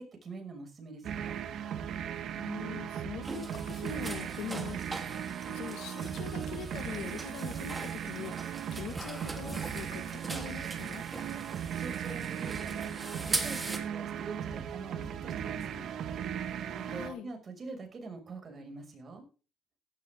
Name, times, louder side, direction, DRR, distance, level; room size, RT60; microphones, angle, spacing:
voice 1, 0.0-1.4 11.2-11.5 11.7-12.9 13.2-15.9 16.9-19.3, right 3 dB, 40° right, 4 dB, 6.2 m, -45 dB
sound 1, 1.0-17.1, right 9 dB, 75° right, 1.6 m, -37 dB
voice 2, 2.4-4.8 5.4-11.0 16.9-17.3, left 10 dB, 90° left, 9 dB, 1.8 m, -43 dB
sound 2, 3.2-13.8, right 2 dB, 20° right, 3.3 m, -41 dB
17.0 x 12.5 x 3.7 m, 0.36 s
cardioid pair, 90°, 0 cm